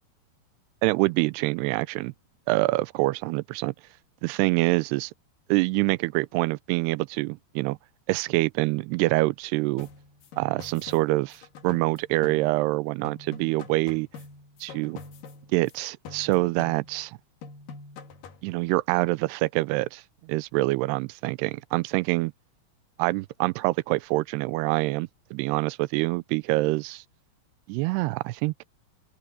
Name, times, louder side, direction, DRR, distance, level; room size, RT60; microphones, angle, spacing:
voice 1, 0.8-2.1 2.5-3.7 4.2-5.1 5.5-7.8 8.1-9.9 10.4-14.1 14.6-15.0 15.5-17.2 18.4-22.3 23.0-27.0 27.7-28.6, right 21 dB, 90° right, 2.7 m, -25 dB
sound 1, 9.8-12.8 13.1-15.8 16.1-17.1 17.4-18.5, left 4 dB, 60° left, 3.5 m, -45 dB
open air
omnidirectional pair, 4.6 m